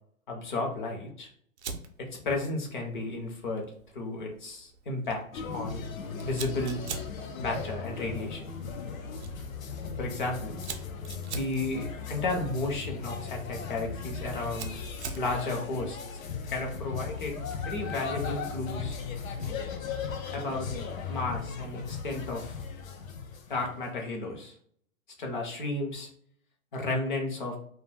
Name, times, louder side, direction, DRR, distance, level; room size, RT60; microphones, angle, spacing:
voice 1, 0.3-1.3 2.0-3.6 3.9-5.8 6.2-6.8 7.4-8.5 10.0-10.6 11.3-14.7 15.1-16.0 16.5-17.4 17.6-19.0 20.3-20.7 21.1-22.6 23.5-24.5 25.2-26.1 26.7-27.6, left 2 dB, 35° left, 1 dB, 0.6 m, -33 dB
Fire, 1.6-19.7, right 5 dB, 55° right, 0.5 m, -47 dB
sound 1, 5.3-23.9, left 5 dB, 75° left, 0.7 m, -37 dB
2.2 x 2.1 x 3.2 m, 0.62 s
hypercardioid pair, 160°, 42 cm